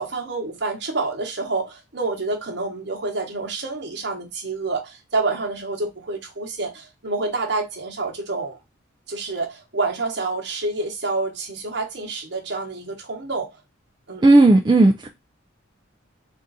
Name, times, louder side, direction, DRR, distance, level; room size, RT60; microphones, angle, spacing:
voice 1, 0.0-8.6 9.1-13.5 14.1-14.2, right 3 dB, 55° right, 1.1 m, -28 dB
voice 2, 14.2-15.1, right 2 dB, 20° right, 0.3 m, -14 dB
3.7 x 2.5 x 4.0 m
head